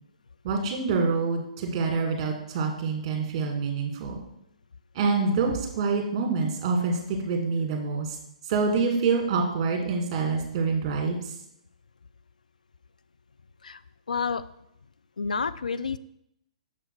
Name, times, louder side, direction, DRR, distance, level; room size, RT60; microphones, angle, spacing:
voice 1, 0.4-4.2 4.9-8.2 8.5-11.3, right 4 dB, 40° right, 2 dB, 1.9 m, -26 dB
voice 2, 14.1-14.4 15.2-16.0, left 5 dB, 85° left, 14 dB, 0.4 m, -29 dB
7.0 x 4.9 x 4.5 m, 0.77 s
hypercardioid pair, 130°, 4 cm